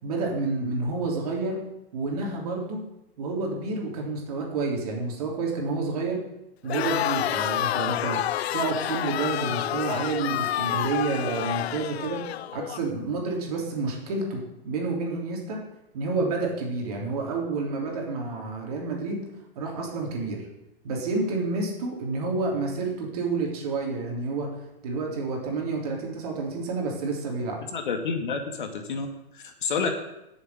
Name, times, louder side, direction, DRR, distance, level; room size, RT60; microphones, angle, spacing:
voice 1, 0.0-1.6 1.9-2.8 3.2-6.2 6.6-8.2 8.5-15.6 15.9-19.2 19.5-20.5 20.8-24.6 24.8-27.6, right 3 dB, 35° right, 0 dB, 3.5 m, -29 dB
Crowd, 6.6-12.8, left 12 dB, 75° left, 0.5 m, -29 dB
voice 2, 27.7-29.1 29.3-29.9, left 5 dB, 50° left, 5 dB, 2.0 m, -29 dB
10.0 x 7.3 x 9.2 m, 0.88 s
hypercardioid pair, 180°, 32 cm